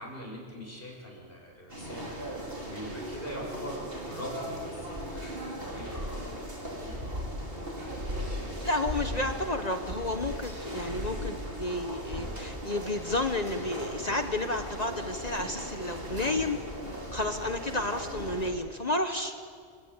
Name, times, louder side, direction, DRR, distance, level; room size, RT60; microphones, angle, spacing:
voice 1, 0.0-2.1 2.7-5.4 5.6-7.2 7.6-8.8, equal, 60° left, -1 dB, 7.2 m, -43 dB
sound 1, 1.7-18.5, equal, 60° right, 4.8 m, -37 dB
voice 2, 8.4-16.6 17.1-19.3, left 2 dB, 40° left, 6 dB, 1.4 m, -31 dB
29.5 x 16.5 x 9.1 m, 2.1 s
omnidirectional pair, 1.1 m